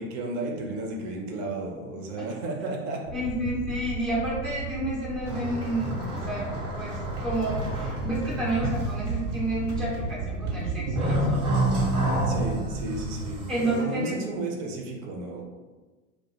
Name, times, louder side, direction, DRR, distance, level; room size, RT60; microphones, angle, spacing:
voice 1, 0.0-3.0 12.3-15.4, right 2 dB, 40° right, 0 dB, 0.6 m, -33 dB
voice 2, 3.1-11.5 13.5-14.3, right 1 dB, ahead, -9 dB, 0.3 m, -30 dB
sound 1, 3.1-13.4, right 4 dB, 90° right, 0.5 m, -35 dB
sound 2, 5.2-9.4 9.7-10.1 10.5-13.8, right 1 dB, 60° right, 1.0 m, -29 dB
2.1 x 2.1 x 2.9 m, 1.3 s
hypercardioid pair, 100°, 42 cm